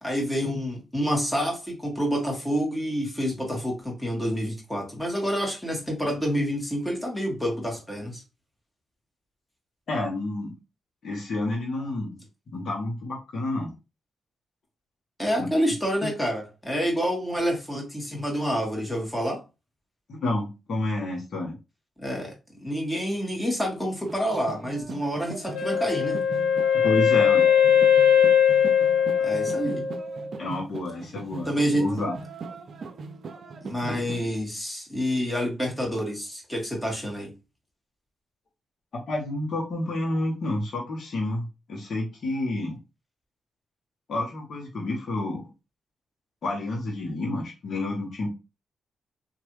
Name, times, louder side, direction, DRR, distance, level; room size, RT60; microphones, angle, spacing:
voice 1, 0.0-8.2 15.2-19.4 22.0-26.2 29.2-29.9 31.5-31.9 33.6-37.3, equal, 10° left, 1.7 m, -28 dB
voice 2, 9.9-10.5 11.0-12.2 12.5-13.7 16.0-16.1 20.1-21.6 26.7-27.5 30.4-31.5 31.7-32.1 38.9-42.8 44.1-45.5 46.4-48.3, left 2 dB, 60° left, 1.1 m, -29 dB
sound 1, 24.0-34.2, right 4 dB, 60° right, 0.5 m, -40 dB
Wind instrument woodwind instrument, 25.5-30.4, left 8 dB, 85° left, 0.5 m, -20 dB
3.1 x 2.6 x 3.1 m
supercardioid pair, 50°, 0 cm